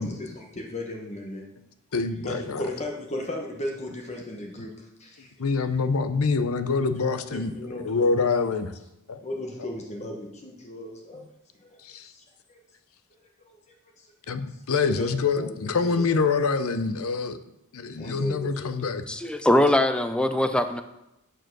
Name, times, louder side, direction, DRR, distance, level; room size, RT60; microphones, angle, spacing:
voice 1, 0.0-1.5 2.2-5.3 7.3-8.4 9.2-11.3 11.6-12.6 13.5-16.2 17.9-18.9, left 1 dB, 30° left, 0 dB, 1.1 m, -37 dB
voice 2, 1.9-2.6 4.6-4.7 5.4-8.7 9.1-9.2 11.8-12.1 14.3-17.4 17.7-19.0, left 4 dB, 75° left, 10 dB, 0.6 m, -26 dB
voice 3, 19.1-20.8, left 1 dB, 5° left, 9 dB, 0.4 m, -22 dB
9.0 x 4.6 x 6.1 m, 0.90 s
head